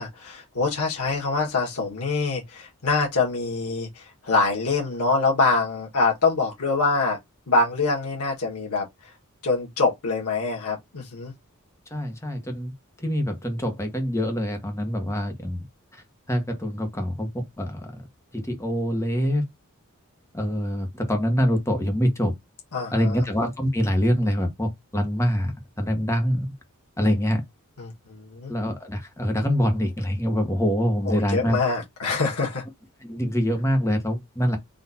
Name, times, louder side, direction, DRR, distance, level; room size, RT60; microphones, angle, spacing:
voice 1, 0.0-7.2 7.5-8.9 9.4-11.3 22.7-23.2 27.8-28.5 31.0-32.6, left 3 dB, 85° left, 1.5 m, -25 dB
voice 2, 11.9-12.7 13.0-15.6 15.9-16.0 16.3-17.9 18.3-19.4 20.3-22.3 22.9-26.5 27.0-27.4 28.5-31.6 33.0-34.6, equal, 15° left, 1.1 m, -25 dB
4.1 x 2.6 x 4.1 m
head